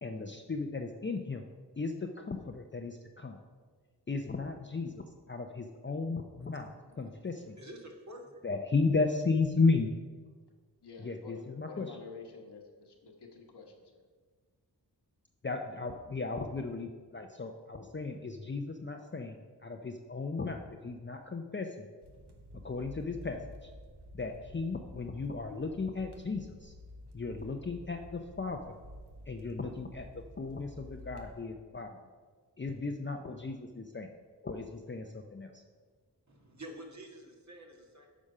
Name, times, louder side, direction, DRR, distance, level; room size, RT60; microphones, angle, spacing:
voice 1, 0.0-1.5 1.8-3.4 4.1-6.7 7.0-7.6 8.4-9.9 11.0-12.0 15.4-21.9 22.6-23.7 24.1-26.7 27.1-28.8 29.3-32.0 32.6-34.1 34.4-35.6, left 3 dB, 30° left, 4 dB, 0.6 m, -35 dB
voice 2, 6.5-8.4 36.3-38.1, right 1 dB, 45° right, 1 dB, 1.6 m, -49 dB
voice 3, 10.8-14.0, left 5 dB, 75° left, 2 dB, 1.4 m, -49 dB
sound 1, 22.0-31.4, left 1 dB, 75° right, 1.2 m, -51 dB
8.8 x 5.1 x 5.5 m, 1.5 s
cardioid pair, 40°, 41 cm